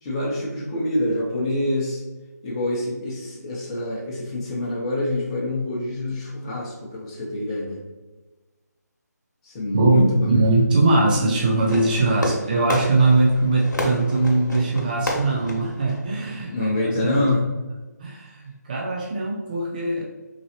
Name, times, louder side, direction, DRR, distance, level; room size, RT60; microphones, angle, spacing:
voice 1, 0.0-2.0 2.4-7.8 9.4-10.6 11.1-11.5 16.5-17.4, left 1 dB, 20° left, -3 dB, 0.8 m, -26 dB
voice 2, 9.7-17.3 18.0-20.0, right 2 dB, 30° right, -3 dB, 0.5 m, -21 dB
Fireworks, 11.6-16.6, left 1 dB, 80° left, 1.0 m, -31 dB
3.7 x 3.1 x 2.9 m, 1.2 s
figure-of-eight pair, 155°, 10 cm